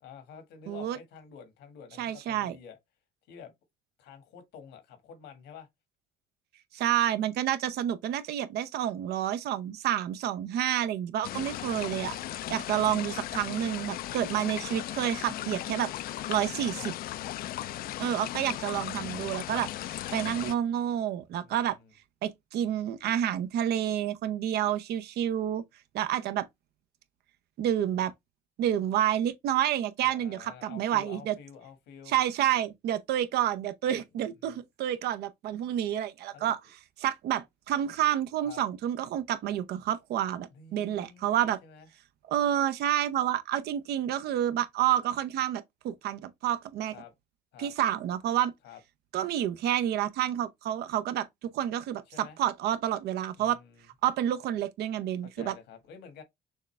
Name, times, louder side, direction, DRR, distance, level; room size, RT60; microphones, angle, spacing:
voice 1, 0.0-2.8 3.3-3.5 4.0-5.7 11.9-12.3 16.8-16.9 20.1-20.3 21.4-21.9 30.0-32.2 34.4-34.6 36.3-36.5 38.4-38.6 40.5-41.9 46.9-47.1 47.5-47.7 48.6-48.8 52.1-52.4 53.4-53.9 55.2-56.2, left 7 dB, 80° left, 1.5 m, -49 dB
voice 2, 0.7-1.0 2.0-2.6 6.7-12.2 12.5-15.9 16.3-16.9 18.0-19.7 20.1-21.8 22.2-25.6 25.9-26.5 27.6-28.1 28.6-31.4 32.1-36.6 37.0-41.6 42.3-46.9 47.6-48.5 49.1-53.6 54.0-55.5, right 11 dB, 75° right, 0.7 m, -29 dB
sound 1, 11.2-20.5, left 13 dB, 60° left, 0.4 m, -37 dB
6.3 x 2.4 x 3.2 m
cardioid pair, 110°, 17 cm